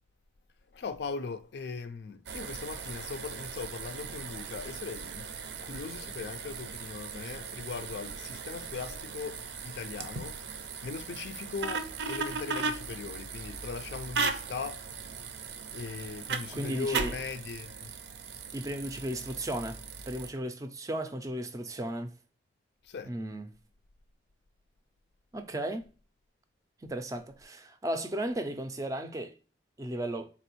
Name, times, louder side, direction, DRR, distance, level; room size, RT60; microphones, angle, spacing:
voice 1, 0.7-5.2 5.6-10.4 10.8-15.0 15.3-15.4 15.7-17.9 22.8-23.2, left 5 dB, 65° left, 0.4 m, -39 dB
sound 1, 2.3-20.3, right 5 dB, 70° right, 0.5 m, -38 dB
voice 2, 16.5-17.2 18.5-22.1 23.0-23.5 25.3-25.9 26.8-29.3 29.8-30.3, right 1 dB, 20° right, 0.4 m, -35 dB
4.2 x 3.0 x 2.9 m
head